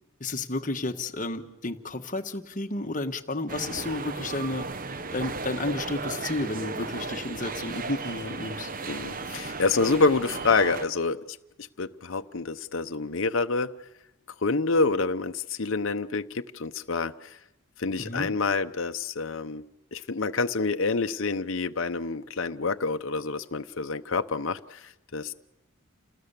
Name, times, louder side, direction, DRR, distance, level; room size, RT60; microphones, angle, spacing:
voice 1, 0.2-4.7 5.1-8.7 18.0-18.3, left 2 dB, 35° left, 6 dB, 1.2 m, -32 dB
sound 1, 3.5-10.9, right 3 dB, 40° right, 0.8 m, -35 dB
voice 2, 8.9-13.8 14.4-17.4 17.8-19.6 19.9-25.3, left 4 dB, 60° left, 7 dB, 0.7 m, -27 dB
29.0 x 19.0 x 6.8 m, 0.91 s
head